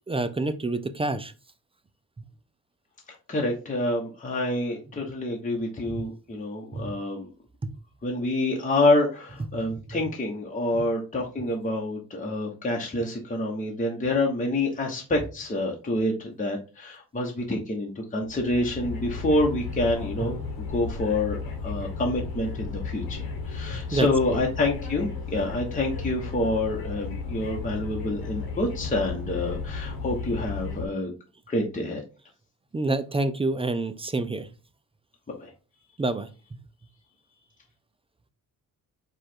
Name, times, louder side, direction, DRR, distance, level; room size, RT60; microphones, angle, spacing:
voice 1, 0.1-1.3 5.9-6.1 6.7-6.9 7.6-7.7 9.5-9.7 23.7-24.4 32.7-34.5 36.0-36.3, right 2 dB, 15° right, 11 dB, 0.3 m, -28 dB
voice 2, 3.3-7.3 8.0-31.1 31.5-32.0 35.3-35.5, left 2 dB, 20° left, 0 dB, 0.9 m, -27 dB
sound 1, 18.2-30.9, left 4 dB, 75° left, 1.3 m, -34 dB
4.8 x 2.4 x 4.4 m, 0.32 s
cardioid pair, 120°, 37 cm